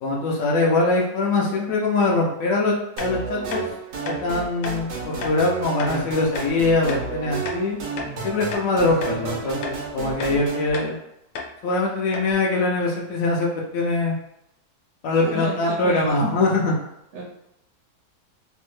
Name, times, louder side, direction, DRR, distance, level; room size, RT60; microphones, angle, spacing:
voice 1, 0.0-2.7 3.0-3.6 4.2-7.8 8.2-11.0 11.6-13.5 13.7-14.2 15.0-16.8, left 2 dB, 70° left, -2 dB, 0.8 m, -22 dB
sound 1, 3.0-3.1 3.5-3.6 4.0-4.2 4.6-4.8 5.2-5.4 5.8-5.9 6.4-6.5 6.9-7.1 7.5-8.2 8.5-8.7 9.0-9.2 9.6-9.8 10.2-10.4 10.7-10.9 11.4-11.5 11.8-11.9 12.1-12.3, left 4 dB, 90° left, 1.2 m, -32 dB
sound 2, 3.0-10.7, right 4 dB, 90° right, 1.4 m, -32 dB
voice 2, 5.8-6.1 8.0-9.6 10.3-10.4 15.2-16.2 17.1-17.2, right 2 dB, 70° right, -2 dB, 1.0 m, -34 dB
3.3 x 2.1 x 3.1 m, 0.82 s
omnidirectional pair, 1.7 m